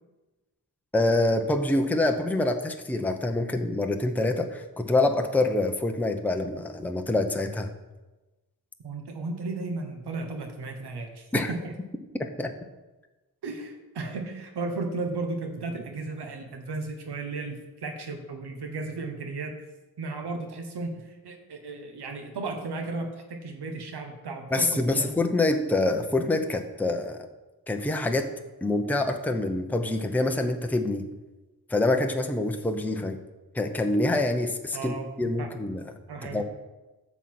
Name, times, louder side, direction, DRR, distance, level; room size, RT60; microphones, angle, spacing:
voice 1, 0.9-7.7 11.3-11.5 12.4-12.5 24.5-27.2 27.7-28.3 28.6-31.1 31.7-33.2 33.5-35.8 36.3-36.4, left 2 dB, 5° left, 4 dB, 0.7 m, -26 dB
voice 2, 8.8-11.7 13.4-19.5 20.0-25.1 34.7-35.5 36.1-36.4, right 3 dB, 85° right, 4 dB, 1.3 m, -35 dB
11.5 x 4.2 x 7.7 m, 1.1 s
wide cardioid pair, 125°, 39 cm